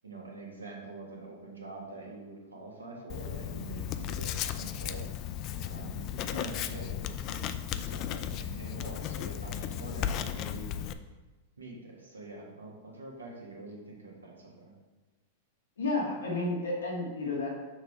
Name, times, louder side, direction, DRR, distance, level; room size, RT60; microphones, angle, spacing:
voice 1, 0.0-5.1 5.6-10.8 11.6-14.7, right 2 dB, 90° right, -2 dB, 1.5 m, -45 dB
Writing, 3.1-10.9, left 10 dB, 40° left, 0.3 m, -35 dB
voice 2, 15.8-17.5, left 2 dB, 85° left, -3 dB, 1.8 m, -32 dB
6.4 x 3.3 x 4.9 m, 1.2 s
hypercardioid pair, 105°, 0 cm